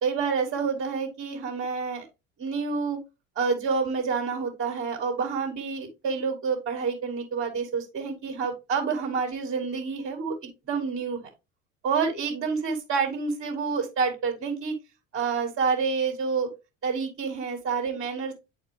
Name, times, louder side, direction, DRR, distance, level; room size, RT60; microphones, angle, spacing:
voice 1, 0.0-2.1 2.4-3.0 3.4-10.3 10.7-11.3 11.8-14.7 15.1-16.5 16.8-18.3, right 5 dB, 35° right, 1 dB, 2.1 m, -28 dB
9.7 x 4.4 x 3.2 m, 0.26 s
figure-of-eight pair, 65°, 39 cm